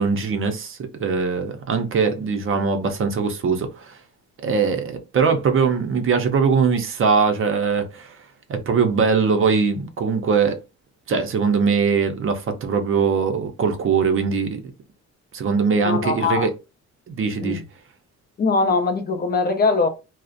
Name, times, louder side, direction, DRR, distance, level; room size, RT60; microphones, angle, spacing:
voice 1, 0.0-3.9 4.4-8.2 8.5-10.6 11.1-14.6 15.3-16.5 17.1-17.6, right 5 dB, 45° right, 0.5 m, -21 dB
voice 2, 15.8-16.5 17.4-17.6 18.4-19.9, left 4 dB, 35° left, 0.4 m, -21 dB
2.4 x 2.0 x 2.5 m
cardioid pair, 125°, 29 cm